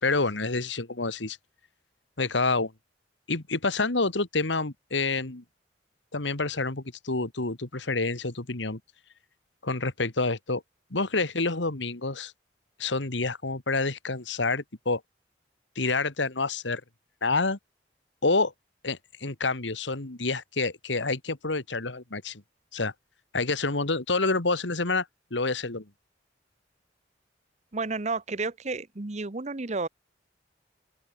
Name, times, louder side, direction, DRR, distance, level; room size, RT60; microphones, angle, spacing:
voice 1, 0.0-1.4 2.2-2.7 3.3-5.4 6.1-8.8 9.6-10.6 10.9-12.3 12.8-15.0 15.8-16.8 17.2-17.6 18.2-18.5 18.8-22.4 22.7-22.9 23.3-25.1 25.3-25.9, left 3 dB, 75° left, 2.0 m, -28 dB
voice 2, 27.7-29.9, right 3 dB, 40° right, 1.0 m, -31 dB
open air
head